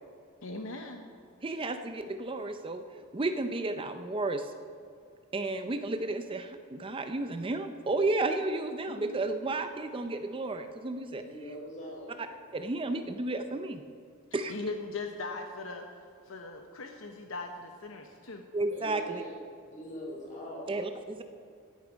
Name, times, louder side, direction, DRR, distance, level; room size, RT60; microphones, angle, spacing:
voice 1, 0.4-1.0 9.0-9.2 14.5-15.9 16.2-18.4, left 3 dB, 65° left, 4 dB, 0.9 m, -39 dB
voice 2, 1.4-2.8 3.1-4.5 5.3-11.2 12.5-13.8 14.3-14.5 18.5-19.2 20.7-21.2, right 2 dB, 25° right, 8 dB, 0.5 m, -32 dB
voice 3, 11.2-12.2 18.7-19.4 19.7-20.8, equal, 35° left, -3 dB, 4.0 m, -42 dB
16.0 x 9.5 x 5.1 m, 2.4 s
head